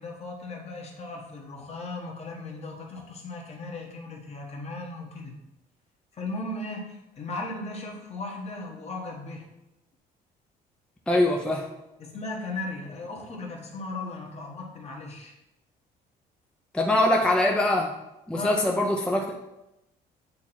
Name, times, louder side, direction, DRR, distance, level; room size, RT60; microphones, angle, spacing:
voice 1, 0.0-5.4 6.1-9.5 12.0-15.3 18.4-18.5, left 2 dB, 40° left, 0 dB, 1.3 m, -37 dB
voice 2, 11.1-11.7 16.7-18.0 18.3-19.3, left 1 dB, 5° left, 0 dB, 0.5 m, -23 dB
8.4 x 2.9 x 4.2 m, 0.92 s
cardioid pair, 110°, 17 cm